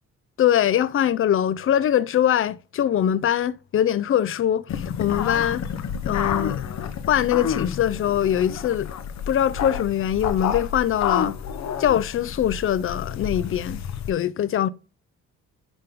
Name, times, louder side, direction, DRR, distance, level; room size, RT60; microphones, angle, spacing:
voice 1, 0.4-5.6 6.0-6.6 7.1-8.9 9.3-11.4 11.8-14.7, left 10 dB, 45° left, 0.5 m, -22 dB
sound 1, 4.7-14.1, left 8 dB, 65° left, 0.9 m, -30 dB
10.0 x 3.8 x 3.5 m
cardioid pair, 90°, 30 cm